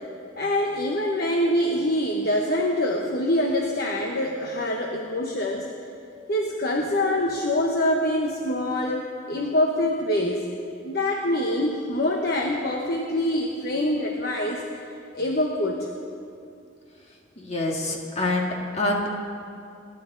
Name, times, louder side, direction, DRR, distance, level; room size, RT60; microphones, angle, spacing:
voice 1, 0.4-5.6 6.3-10.4 10.8-14.6 15.1-15.9, left 1 dB, 50° left, 0 dB, 1.1 m, -25 dB
voice 2, 17.4-19.1, left 2 dB, 35° left, 0 dB, 2.0 m, -26 dB
28.0 x 12.0 x 4.0 m, 2.5 s
head